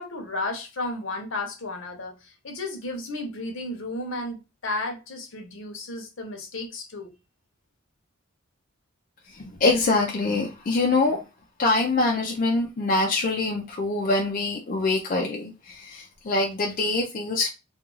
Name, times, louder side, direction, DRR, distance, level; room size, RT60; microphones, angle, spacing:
voice 1, 0.0-7.1, left 2 dB, 70° left, 0.7 m, -33 dB
voice 2, 9.4-11.2 11.6-17.5, left 3 dB, 40° left, 0.4 m, -24 dB
2.3 x 2.3 x 3.0 m
head